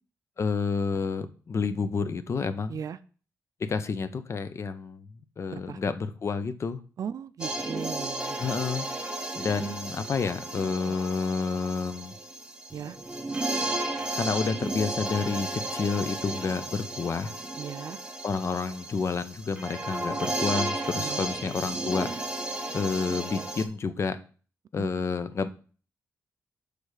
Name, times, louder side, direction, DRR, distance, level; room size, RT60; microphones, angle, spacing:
voice 1, 0.4-2.8 3.7-5.1 5.4-6.8 8.4-8.9 9.3-12.1 14.1-17.3 18.2-22.1 22.7-24.2 24.7-25.5, left 4 dB, 45° left, 11 dB, 0.6 m, -29 dB
voice 2, 7.0-8.4 9.6-9.7 10.9-11.0 12.7-13.0 17.6-18.0 20.9-21.3 24.8-24.9, right 8 dB, 60° right, 13 dB, 0.4 m, -37 dB
sound 1, 7.4-23.7, right 2 dB, 15° right, 0.8 m, -34 dB
6.3 x 3.3 x 4.8 m, 0.40 s
cardioid pair, 95°, 7 cm